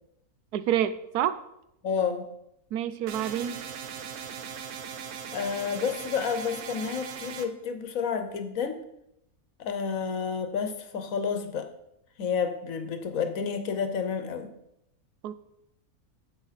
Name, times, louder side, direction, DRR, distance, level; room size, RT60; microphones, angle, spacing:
voice 1, 0.5-1.4 2.7-3.6 15.2-15.4, right 10 dB, 90° right, 13 dB, 1.1 m, -28 dB
voice 2, 1.8-2.3 5.3-8.8 9.6-11.7 12.2-14.5, left 6 dB, 65° left, 8 dB, 1.2 m, -30 dB
sound 1, 3.1-7.5, right 7 dB, 60° right, 1.0 m, -39 dB
9.6 x 7.8 x 4.1 m, 0.81 s
omnidirectional pair, 1.6 m